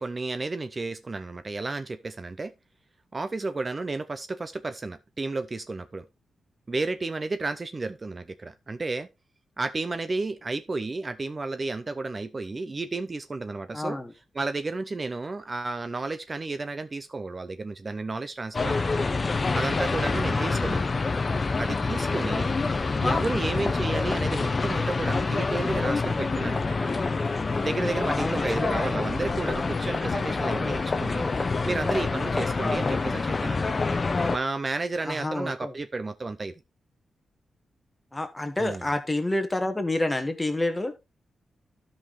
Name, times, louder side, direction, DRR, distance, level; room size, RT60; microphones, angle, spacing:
voice 1, 0.0-2.5 3.1-6.0 6.7-9.1 9.6-14.0 14.3-19.0 19.5-20.9 21.6-22.5 23.0-26.9 27.6-33.7 34.3-36.5 38.6-38.8, right 3 dB, 30° right, 0.5 m, -32 dB
voice 2, 13.7-14.1 20.3-20.7 28.1-28.8 32.6-33.0 35.0-35.7 38.1-40.9, left 2 dB, 15° left, 1.4 m, -29 dB
sound 1, 18.5-34.4, left 3 dB, 30° left, 0.7 m, -26 dB
12.5 x 5.5 x 3.1 m
cardioid pair, 110°, 0 cm